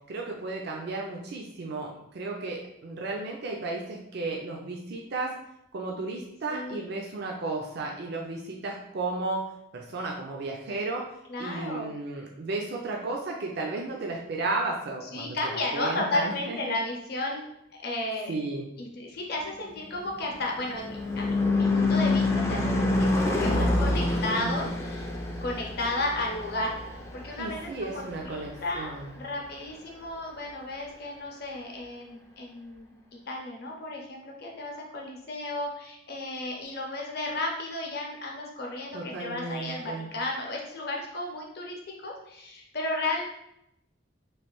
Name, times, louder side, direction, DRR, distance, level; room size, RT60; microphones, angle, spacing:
voice 1, 0.1-5.3 5.7-9.4 9.7-11.0 11.4-16.8 18.3-18.7 27.4-29.2 38.9-40.1, right 3 dB, 60° right, 0 dB, 0.4 m, -34 dB
voice 2, 6.5-6.9 11.3-11.9 15.1-17.4 17.8-18.3 18.8-25.1 25.4-32.9 33.3-43.3, left 2 dB, 55° left, 0 dB, 0.7 m, -33 dB
Car passing by / Truck / Engine, 19.8-28.5, left 2 dB, 15° left, 0.3 m, -27 dB
3.1 x 2.5 x 3.0 m, 0.82 s
head